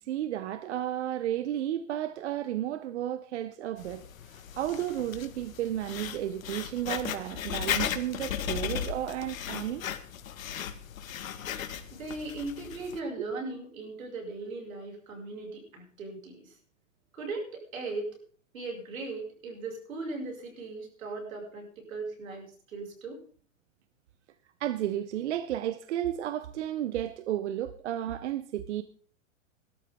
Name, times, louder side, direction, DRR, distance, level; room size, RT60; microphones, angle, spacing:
voice 1, 0.0-9.9 24.6-28.8, right 12 dB, 60° right, 0.9 m, -33 dB
Writing, 3.8-13.0, left 9 dB, 80° left, 1.7 m, -36 dB
voice 2, 11.9-16.5 17.1-18.1 18.5-23.2, right 3 dB, 85° right, 6.4 m, -38 dB
18.0 x 13.0 x 3.7 m
hypercardioid pair, 155°, 40 cm